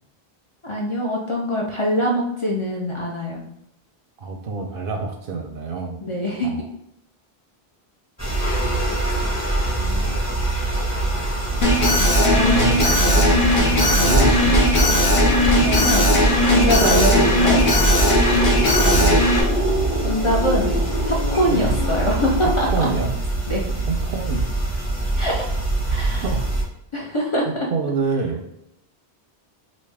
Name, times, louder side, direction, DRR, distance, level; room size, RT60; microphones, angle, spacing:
voice 1, 0.6-3.4 6.0-6.5 8.4-8.6 12.2-12.6 13.0-13.3 15.6-16.2 16.5-17.6 20.0-22.7 23.5-23.6 25.2-25.4 25.9-26.2 26.9-27.7, equal, 40° left, -3 dB, 0.5 m, -23 dB
voice 2, 4.2-6.0 6.4-6.6 8.6-8.8 9.7-10.1 12.4-12.9 14.0-14.8 16.8-17.1 18.8-19.3 21.5-21.7 22.4-23.1 23.9-24.5 26.2-26.5 27.4-28.4, right 4 dB, 65° right, 4 dB, 0.7 m, -27 dB
sound 1, 8.2-26.6, right 2 dB, 15° left, 1.1 m, -24 dB
Alarm, 11.6-19.4, equal, 55° left, 0.9 m, -18 dB
sound 2, 12.1-23.2, left 1 dB, 75° left, 1.3 m, -28 dB
3.2 x 2.6 x 3.4 m, 0.80 s
omnidirectional pair, 1.1 m